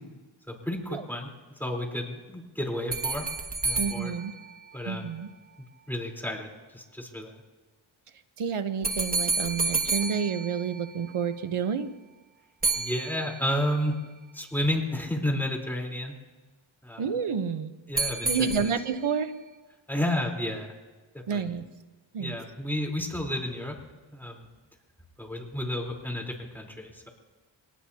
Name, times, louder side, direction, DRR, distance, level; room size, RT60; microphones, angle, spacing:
voice 1, 0.5-1.3 1.6-3.3 3.6-4.1 4.7-5.1 5.9-7.4 12.7-14.0 14.3-16.1 16.8-17.1 17.9-18.7 19.9-20.7 21.1-21.4 22.2-23.8 24.1-24.5 25.2-27.1, left 1 dB, 5° left, 0 dB, 3.9 m, -31 dB
sound 1, 2.9-5.3 8.8-11.3 12.6-13.8 18.0-19.2, right 4 dB, 15° right, 1.8 m, -31 dB
voice 2, 3.8-4.3 4.9-5.3 8.4-11.9 17.0-17.7 18.3-19.3 21.3-21.6 22.1-22.4, right 6 dB, 85° right, 10 dB, 1.1 m, -29 dB
24.5 x 19.0 x 2.9 m, 1.2 s
cardioid pair, 50°, 49 cm